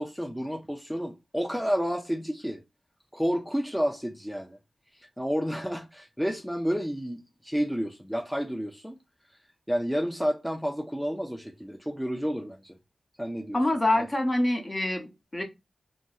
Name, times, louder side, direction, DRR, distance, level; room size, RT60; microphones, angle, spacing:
voice 1, 0.0-2.6 3.1-4.6 4.9-9.0 9.7-12.8 13.2-13.6 14.0-14.1, equal, ahead, 0.4 m, -30 dB
voice 2, 13.5-15.4, left 1 dB, 35° left, 0.8 m, -26 dB
2.5 x 2.0 x 3.7 m
cardioid pair, 45°, 0 cm